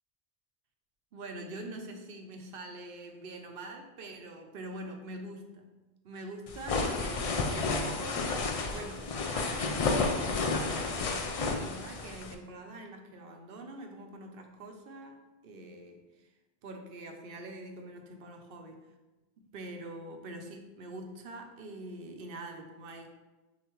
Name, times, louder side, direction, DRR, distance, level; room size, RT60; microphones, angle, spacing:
voice 1, 1.1-5.7 6.0-16.3 16.6-18.8 19.4-23.1, right 2 dB, 65° right, 4 dB, 0.8 m, -45 dB
sound 1, 6.5-12.3, left 3 dB, 60° left, 0.3 m, -31 dB
6.5 x 2.6 x 3.0 m, 1.1 s
omnidirectional pair, 1.1 m